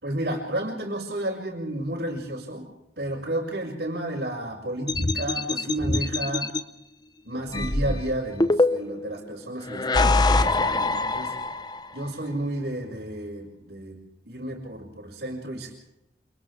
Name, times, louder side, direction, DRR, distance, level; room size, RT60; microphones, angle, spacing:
voice 1, 0.0-2.7 3.0-6.5 7.2-11.3 11.9-14.0 14.3-15.7, right 1 dB, 70° right, -7 dB, 5.6 m, -32 dB
sound 1, 4.9-6.6 7.5-9.1 9.7-11.8, left 2 dB, 25° left, 0.8 m, -23 dB
29.5 x 27.0 x 3.5 m, 0.85 s
head